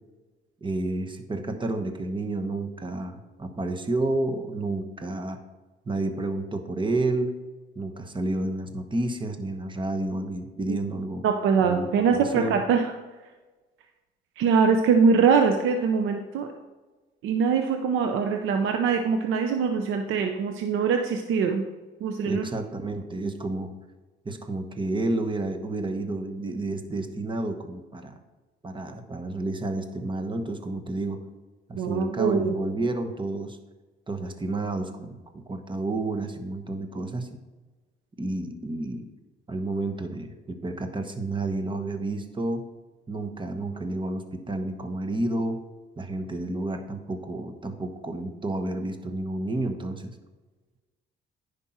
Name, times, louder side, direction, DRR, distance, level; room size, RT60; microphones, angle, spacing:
voice 1, 0.6-5.4 5.9-7.4 7.7-11.2 11.6-12.6 22.2-23.7 24.2-28.2 28.6-31.2 31.7-33.6 34.1-37.4 38.2-39.1 39.5-42.7 43.1-45.6 46.0-50.1, right 2 dB, 25° right, 6 dB, 1.1 m, -30 dB
voice 2, 11.2-12.9 14.4-16.5 17.2-21.6 22.0-22.4 31.8-32.5, right 5 dB, 85° right, 5 dB, 0.7 m, -23 dB
10.0 x 5.3 x 4.4 m, 1.2 s
cardioid pair, 90°, 20 cm